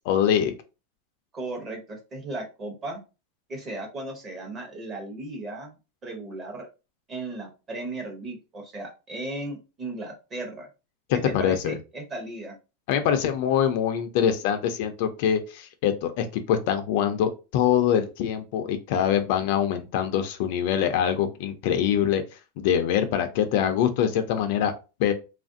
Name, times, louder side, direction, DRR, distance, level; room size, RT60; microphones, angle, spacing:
voice 1, 0.1-0.5 11.3-11.8 12.9-22.2 22.6-24.7 25.0-25.1, left 9 dB, 50° left, 8 dB, 0.4 m, -24 dB
voice 2, 1.3-3.0 3.5-5.8 6.0-6.7 7.1-10.7 11.1-12.6, right 2 dB, 20° right, 2 dB, 0.8 m, -36 dB
3.0 x 2.4 x 2.6 m, 0.30 s
supercardioid pair, 165°, 0 cm